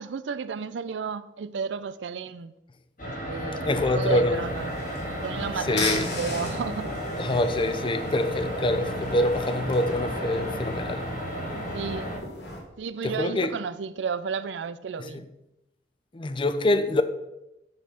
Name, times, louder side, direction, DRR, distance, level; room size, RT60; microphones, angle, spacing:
voice 1, 0.0-2.5 3.0-4.7 5.1-6.9 11.7-12.1 12.8-15.3, right 6 dB, 85° right, 0.4 m, -33 dB
sound 1, 3.0-12.2, equal, 50° left, 3.2 m, -33 dB
voice 2, 3.7-4.4 5.7-6.1 7.2-11.0 13.0-13.5 15.1-15.2 16.1-17.0, left 2 dB, 30° left, 0.5 m, -25 dB
sound 2, 4.3-12.6, left 2 dB, 70° left, 2.5 m, -39 dB
9.7 x 4.5 x 5.7 m
head